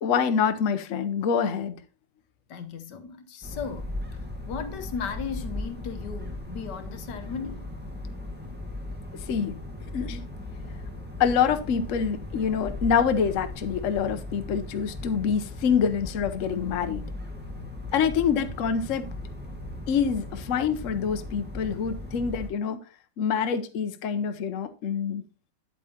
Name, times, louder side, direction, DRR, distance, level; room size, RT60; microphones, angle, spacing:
voice 1, 0.0-1.8 9.3-9.6 9.9-10.2 11.2-17.1 17.9-19.1 19.9-22.8 23.2-25.2, left 7 dB, 55° left, 1.0 m, -26 dB
voice 2, 2.5-3.9 4.5-7.7, left 6 dB, 85° left, 1.5 m, -36 dB
sound 1, 3.4-22.5, left 2 dB, 5° right, 1.5 m, -38 dB
9.0 x 8.4 x 2.8 m
omnidirectional pair, 1.8 m